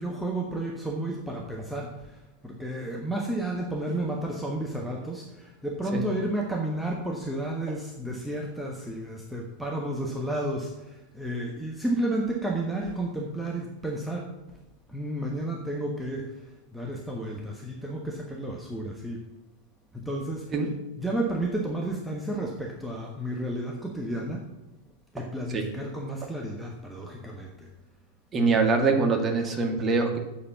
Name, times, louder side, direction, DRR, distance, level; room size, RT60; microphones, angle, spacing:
voice 1, 0.0-14.6 14.9-16.4 16.7-19.3 19.9-20.7 21.0-24.5 25.1-27.7, right 1 dB, ahead, -1 dB, 1.2 m, -32 dB
voice 2, 28.3-30.2, right 4 dB, 25° right, 3 dB, 1.8 m, -24 dB
7.4 x 7.0 x 7.2 m, 1.1 s
figure-of-eight pair, 90°, 0 cm